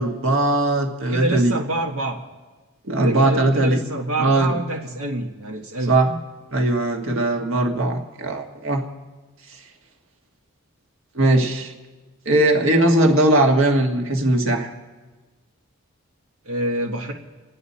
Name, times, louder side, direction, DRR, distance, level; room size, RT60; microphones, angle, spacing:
voice 1, 0.0-1.6 2.8-3.8 4.2-4.5 5.9-6.1 6.5-8.8 9.5-9.6 11.1-11.7 12.2-14.7, right 2 dB, 65° right, 3 dB, 1.6 m, -19 dB
voice 2, 1.1-2.2 3.0-5.9 16.4-17.1, right 1 dB, 85° right, 1 dB, 1.4 m, -26 dB
29.0 x 10.0 x 4.2 m, 1.3 s
head